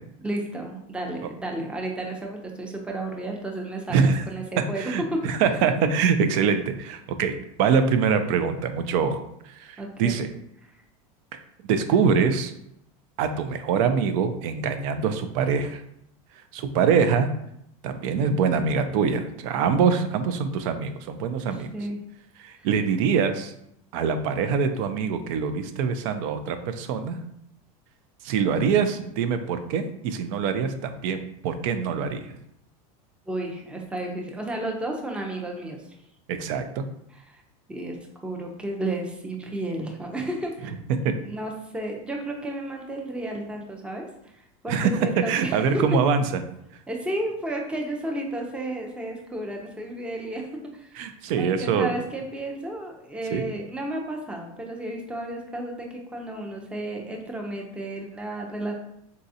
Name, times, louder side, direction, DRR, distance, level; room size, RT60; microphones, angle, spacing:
voice 1, 0.2-5.2 9.8-10.2 21.5-22.0 22.6-22.7 33.3-35.8 37.1-37.4 37.7-40.7 41.2-44.3 44.6-45.8 46.9-51.1 51.4-58.7, right 1 dB, 5° right, 1 dB, 0.5 m, -32 dB
voice 2, 3.9-4.2 4.8-10.3 11.3-11.4 11.7-12.5 13.2-15.8 16.5-17.3 17.8-21.7 22.4-23.5 23.9-27.2 28.2-32.4 36.3-36.8 40.9-41.1 44.7-44.9 45.3-46.2 50.9-51.9 53.3-53.4, right 6 dB, 65° right, 9 dB, 0.5 m, -24 dB
4.0 x 2.3 x 2.7 m, 0.76 s
supercardioid pair, 125°, 19 cm